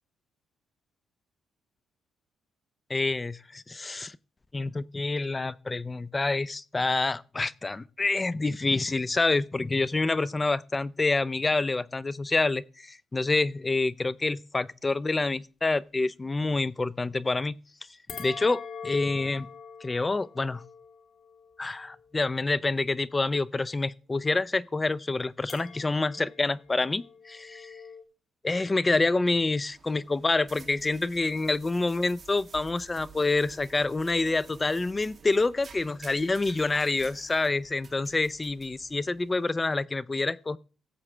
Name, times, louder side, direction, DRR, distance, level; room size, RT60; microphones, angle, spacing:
voice 1, 2.9-4.2 4.5-17.6 18.2-19.5 19.8-20.6 21.6-27.8 28.4-40.6, left 3 dB, 20° left, 0.4 m, -27 dB
sound 1, 18.1-22.6 25.5-28.0, left 6 dB, 60° left, 1.6 m, -45 dB
sound 2, 29.5-39.5, right 5 dB, 40° right, 1.5 m, -51 dB
17.5 x 7.3 x 3.3 m
cardioid pair, 90°, 0 cm